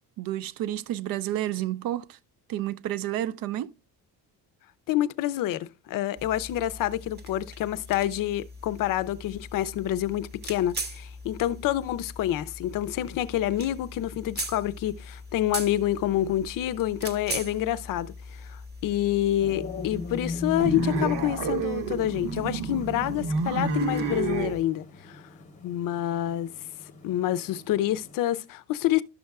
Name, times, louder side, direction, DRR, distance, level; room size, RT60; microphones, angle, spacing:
voice 1, 0.2-2.2 2.5-3.7, right 13 dB, 60° right, 0.5 m, -30 dB
voice 2, 4.9-25.2 25.6-26.5 27.0-29.0, left 13 dB, 55° left, 0.5 m, -28 dB
sound 1, 6.2-24.6, equal, 25° right, 0.8 m, -41 dB
sound 2, 19.4-28.2, left 3 dB, 20° left, 0.8 m, -38 dB
sound 3, 20.6-24.6, right 4 dB, 80° right, 1.1 m, -30 dB
12.0 x 6.5 x 2.3 m
cardioid pair, 170°, 39 cm